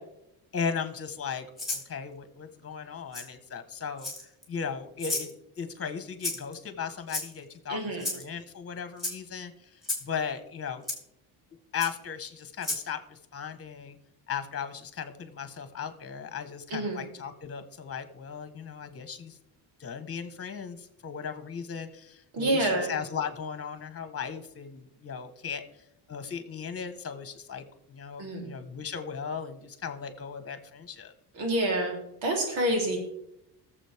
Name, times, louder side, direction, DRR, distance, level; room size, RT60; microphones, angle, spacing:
voice 1, 0.5-4.1 4.5-10.8 11.7-14.0 14.3-19.4 19.8-25.6 26.1-31.1, left 6 dB, 30° left, 9 dB, 1.5 m, -37 dB
Rattle (instrument), 1.6-1.9 3.1-3.3 4.0-4.4 5.0-5.3 6.2-6.5 7.1-7.5 8.0-8.2 9.0-9.2 9.8-10.1 10.9-11.0 11.8-11.9 12.6-12.8, left 2 dB, ahead, 3.3 m, -32 dB
voice 2, 7.7-8.1 16.7-17.0 22.3-22.9 28.2-28.5 31.3-31.9 32.2-33.0, right 1 dB, 90° right, 0 dB, 3.9 m, -27 dB
20.5 x 7.4 x 3.6 m, 0.80 s
cardioid pair, 130°, 44 cm